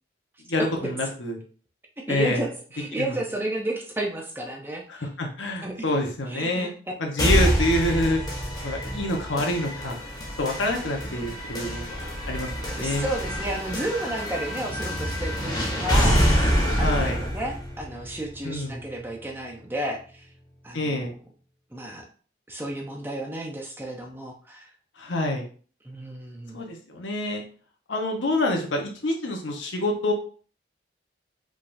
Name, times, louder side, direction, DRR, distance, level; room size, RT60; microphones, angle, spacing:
voice 1, 0.5-1.4 2.1-2.5 3.0-3.2 4.9-6.7 7.0-8.2 8.6-10.0 10.4-13.1 16.8-17.2 18.4-18.8 20.7-21.1 25.0-25.4 26.5-27.4 27.9-30.1, left 1 dB, 90° left, 1 dB, 1.1 m, -27 dB
voice 2, 2.1-5.1 5.6-5.8 6.3-6.7 7.4-7.6 12.6-16.2 16.8-20.2 20.6-21.1 21.7-22.1 22.5-24.7 25.8-26.6, right 1 dB, 10° right, 1 dB, 0.7 m, -32 dB
sound 1, 7.2-19.1, equal, 20° left, 1.0 m, -26 dB
5.1 x 3.6 x 2.6 m, 0.41 s
head